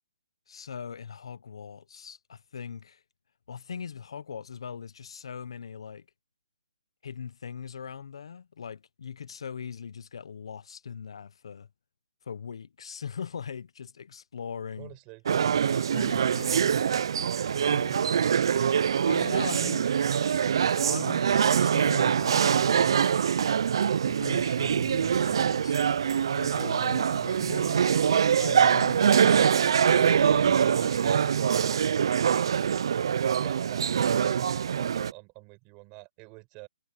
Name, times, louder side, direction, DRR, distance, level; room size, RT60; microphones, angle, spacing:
voice 1, 0.5-3.0 3.5-6.0 7.0-11.7 12.2-14.9 15.7-16.8 17.6-18.1 19.1-20.0 20.8-23.3 24.0-25.8 26.3-31.8, left 6 dB, 60° left, 0.8 m, -41 dB
voice 2, 14.8-15.2 33.4-36.7, right 28 dB, 20° right, 6.1 m, -47 dB
sound 1, 15.3-35.1, right 7 dB, 55° right, 0.4 m, -24 dB
hypercardioid pair, 165°, 3 cm